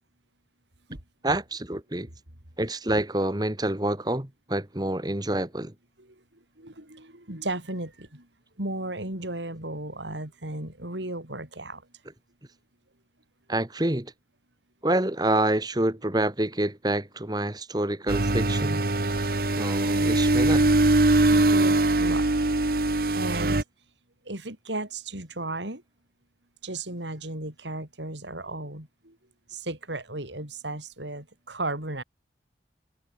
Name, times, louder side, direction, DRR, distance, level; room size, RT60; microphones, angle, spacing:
voice 1, 1.2-2.1 2.6-5.7 13.5-14.1 14.8-18.8 19.6-20.8, right 1 dB, 20° right, 1.9 m, -27 dB
voice 2, 6.0-8.3 8.6-11.9 21.3-22.3 22.9-23.6 24.2-25.8 26.6-29.2 29.5-32.0, right 2 dB, 80° right, 6.5 m, -35 dB
sound 1, 18.1-23.6, right 2 dB, 55° right, 1.1 m, -22 dB
head